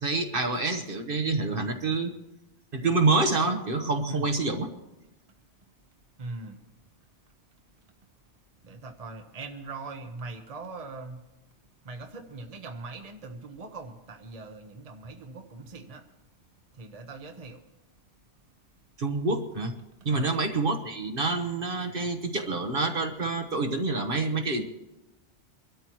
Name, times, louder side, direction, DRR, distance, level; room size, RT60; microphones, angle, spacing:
voice 1, 0.0-2.1 2.7-4.7 19.0-19.7 20.0-24.7, right 3 dB, 50° right, 6 dB, 1.3 m, -27 dB
voice 2, 6.2-6.6 8.0-8.1 8.6-11.6 11.8-16.1 16.7-17.7 20.1-20.4, right 3 dB, 35° right, 5 dB, 1.0 m, -41 dB
24.5 x 13.0 x 3.0 m, 0.97 s
omnidirectional pair, 1.2 m